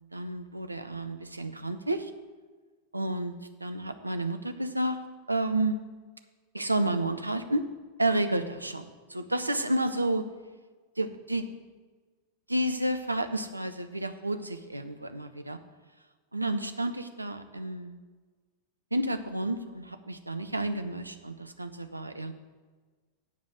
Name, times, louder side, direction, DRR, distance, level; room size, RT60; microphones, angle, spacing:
voice 1, 0.1-2.1 2.9-3.3 3.6-5.0 5.3-5.8 6.5-7.6 8.0-8.8 9.1-10.3 11.0-11.5 12.5-15.6 16.3-18.0 18.9-22.3, right 1 dB, 85° right, 8 dB, 0.7 m, -30 dB
9.6 x 5.2 x 7.8 m, 1.4 s
figure-of-eight pair, 90°, 0 cm